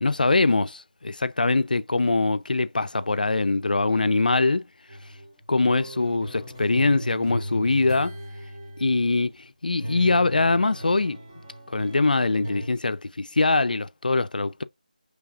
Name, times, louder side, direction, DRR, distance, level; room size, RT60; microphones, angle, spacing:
voice 1, 0.0-4.6 5.5-8.2 8.8-9.3 9.6-11.2 11.7-14.6, left 3 dB, 75° left, 0.4 m, -23 dB
sound 1, 4.9-9.4 9.8-12.7, right 1 dB, 25° right, 1.9 m, -37 dB
6.1 x 3.3 x 2.4 m
figure-of-eight pair, 170°, 5 cm